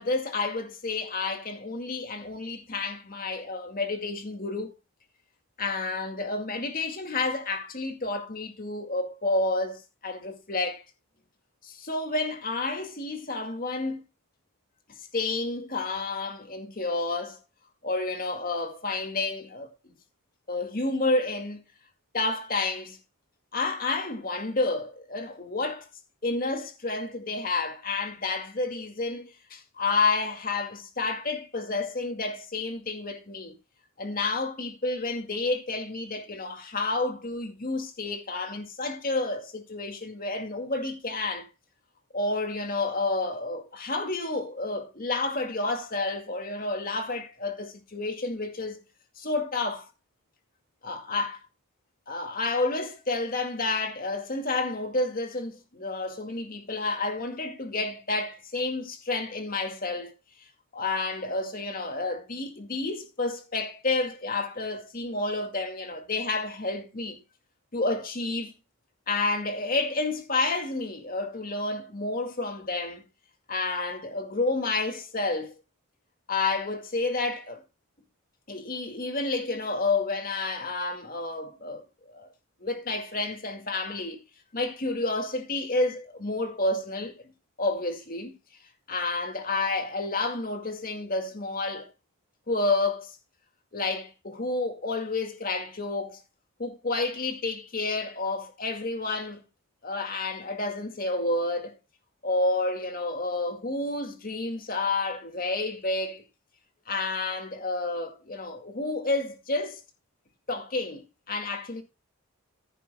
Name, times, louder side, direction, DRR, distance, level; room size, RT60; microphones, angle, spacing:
voice 1, 0.0-4.7 5.6-10.8 11.6-14.0 15.1-17.4 17.8-19.9 20.5-21.6 22.1-23.0 23.5-25.9 26.2-33.6 34.0-41.5 42.1-48.8 49.2-49.9 50.8-51.4 52.1-60.1 60.7-67.2 67.7-68.5 69.1-73.0 73.5-75.5 76.3-77.6 78.5-82.3 82.6-84.2 84.5-87.2 87.6-88.3 88.9-91.9 92.5-93.2 93.7-96.2 96.6-99.4 99.8-101.8 102.2-106.2 106.9-109.8 110.5-111.8, left 3 dB, 40° left, 2.1 m, -30 dB
15.5 x 10.5 x 2.2 m
head